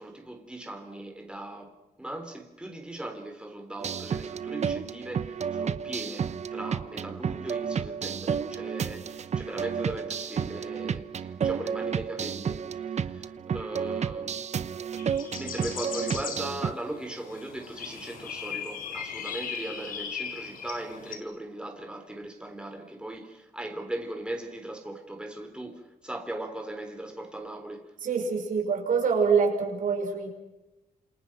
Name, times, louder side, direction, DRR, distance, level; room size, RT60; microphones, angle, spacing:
voice 1, 0.0-14.4 15.3-27.9, right 1 dB, 5° right, 3.8 m, -39 dB
sound 1, 3.8-16.7, right 7 dB, 55° right, 1.0 m, -31 dB
sound 2, 15.0-21.2, left 7 dB, 90° left, 4.3 m, -38 dB
voice 2, 28.0-30.3, right 5 dB, 70° right, 5.7 m, -25 dB
28.5 x 28.0 x 6.1 m
cardioid pair, 95°, 14 cm